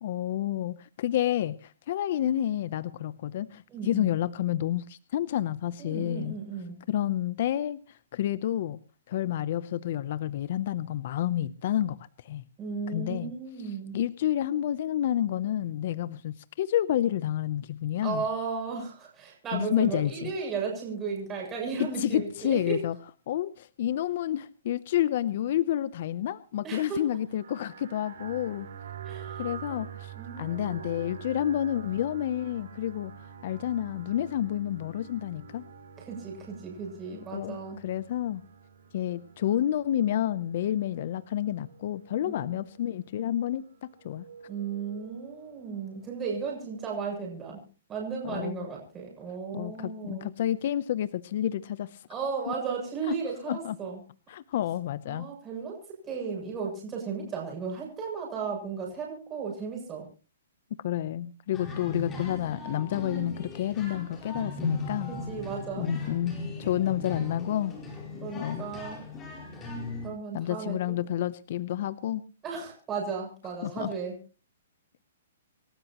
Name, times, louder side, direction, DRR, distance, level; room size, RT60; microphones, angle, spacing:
voice 1, 0.0-6.4 6.9-8.8 9.1-12.0 12.2-12.4 12.9-13.3 13.6-18.2 19.5-20.3 21.8-22.9 23.3-28.7 29.4-33.1 33.4-35.7 37.3-37.6 37.8-38.4 38.9-43.6 44.0-44.3 48.2-48.7 49.5-52.1 52.5-52.6 53.1-53.2 53.5-53.8 54.3-55.3 60.8-65.1 65.8-67.7 68.3-68.6 70.3-72.2 73.6-73.9, left 11 dB, 50° left, 17 dB, 0.7 m, -29 dB
voice 2, 3.7-4.1 5.8-6.8 12.6-14.0 18.0-22.8 26.6-27.0 29.0-29.8 30.1-31.2 36.0-37.8 42.2-42.5 44.5-47.6 47.9-50.3 52.1-54.0 55.1-60.1 65.1-66.1 68.2-69.0 70.0-71.0 72.4-74.1, right 5 dB, 15° right, -2 dB, 7.4 m, -35 dB
sound 1, 27.3-47.0, right 7 dB, 70° right, 7.4 m, -47 dB
sound 2, 61.5-70.1, left 2 dB, 15° left, 4.8 m, -37 dB
27.5 x 13.0 x 3.0 m, 0.35 s
hypercardioid pair, 160°, 0 cm